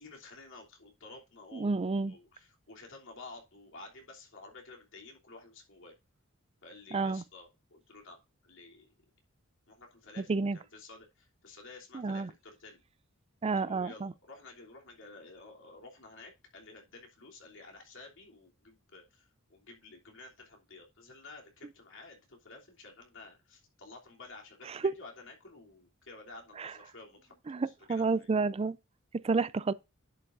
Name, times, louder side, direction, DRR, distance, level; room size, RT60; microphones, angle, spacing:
voice 1, 0.0-5.9 6.6-8.2 8.4-8.9 9.7-12.8 13.5-28.3, left 3 dB, 65° left, 3.1 m, -52 dB
voice 2, 1.5-2.2 6.9-7.2 10.2-10.6 11.9-12.3 13.4-14.1 24.7-24.9 26.6-26.7 27.5-28.8 29.1-29.7, right 4 dB, 30° right, 0.4 m, -30 dB
11.0 x 7.0 x 2.6 m
head